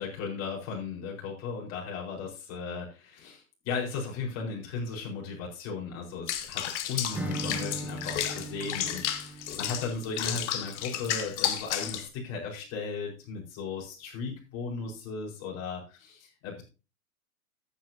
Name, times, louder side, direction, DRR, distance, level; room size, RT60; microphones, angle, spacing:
voice 1, 0.0-16.6, left 5 dB, 35° left, -1 dB, 4.6 m, -36 dB
Water / Bathtub (filling or washing), 6.3-12.1, left 10 dB, 50° left, 1.5 m, -32 dB
Acoustic guitar / Strum, 7.1-11.0, right 2 dB, 5° right, 1.0 m, -39 dB
13.5 x 8.9 x 2.8 m, 0.31 s
hypercardioid pair, 115°, 43 cm